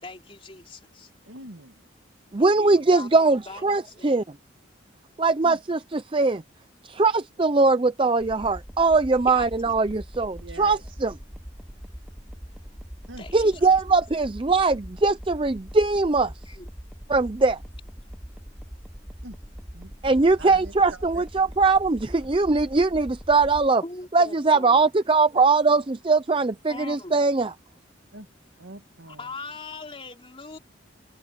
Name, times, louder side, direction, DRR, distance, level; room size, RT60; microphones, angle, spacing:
voice 1, 0.0-1.1 2.5-4.1 9.3-9.8 13.2-13.7 16.5-16.7 23.8-24.9 26.7-27.2 29.1-30.6, left 3 dB, 30° left, 3.5 m, -41 dB
voice 2, 1.3-1.8 5.4-5.6 10.4-10.8 13.1-13.2 13.5-13.7 19.2-19.4 19.7-20.7 21.1-21.2 28.1-28.3 28.6-29.3, right 1 dB, 85° right, 2.1 m, -43 dB
voice 3, 2.3-4.2 5.2-6.4 6.9-11.1 13.3-16.3 17.1-17.6 20.0-23.8 24.1-27.5, right 3 dB, 25° right, 0.6 m, -21 dB
sound 1, 8.2-23.7, equal, 5° right, 1.0 m, -42 dB
open air
head